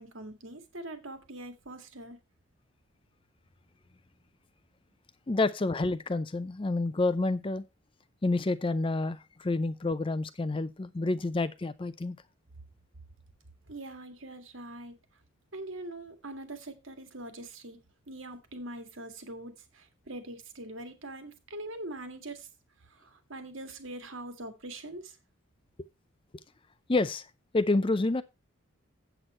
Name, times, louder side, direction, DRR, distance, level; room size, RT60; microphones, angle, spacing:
voice 1, 0.0-2.2 13.7-15.0 15.5-17.8 18.1-22.5 22.8-25.2, right 1 dB, 70° right, 1.9 m, -43 dB
voice 2, 5.3-7.6 8.2-12.2 26.9-27.3 27.5-28.2, left 2 dB, 25° left, 0.5 m, -28 dB
8.1 x 8.0 x 4.3 m
head